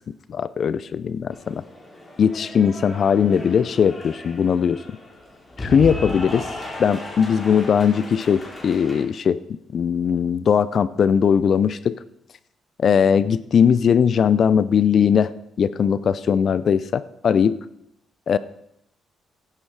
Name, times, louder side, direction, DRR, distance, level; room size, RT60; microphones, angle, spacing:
voice 1, 0.3-1.6 2.2-5.0 5.6-6.5 6.8-12.0 12.8-15.3 15.6-17.6 18.3-18.4, left 7 dB, 55° left, 17 dB, 0.5 m, -19 dB
Cheering / Applause, 1.3-9.0, left 1 dB, 25° left, 4.7 m, -35 dB
15.5 x 11.5 x 4.7 m, 0.76 s
cardioid pair, 90°, 0 cm